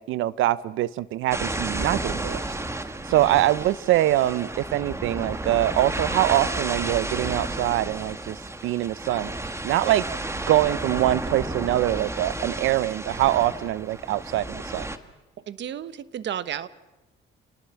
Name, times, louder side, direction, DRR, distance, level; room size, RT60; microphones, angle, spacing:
voice 1, 0.0-2.4 3.1-9.3 9.6-10.0 10.5-14.9, right 14 dB, 90° right, 18 dB, 0.8 m, -24 dB
sound 1, 1.3-15.0, right 2 dB, 15° right, 1.8 m, -32 dB
voice 2, 3.1-3.4 15.5-16.7, right 9 dB, 65° right, 14 dB, 1.3 m, -33 dB
29.5 x 19.0 x 7.2 m, 1.1 s
cardioid pair, 90°, 20 cm